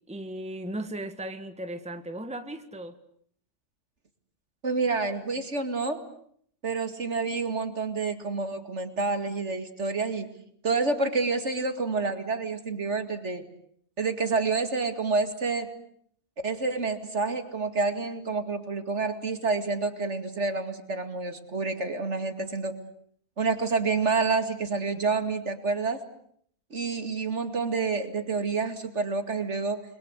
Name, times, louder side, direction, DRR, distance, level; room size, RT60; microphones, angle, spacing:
voice 1, 0.1-3.0, right 1 dB, 5° right, 8 dB, 1.7 m, -36 dB
voice 2, 4.6-6.0 6.6-10.3 10.6-13.5 14.0-15.7 16.4-22.8 23.4-26.0 26.7-29.8, right 4 dB, 55° right, 8 dB, 2.6 m, -28 dB
29.5 x 22.0 x 8.1 m, 0.65 s
omnidirectional pair, 1.4 m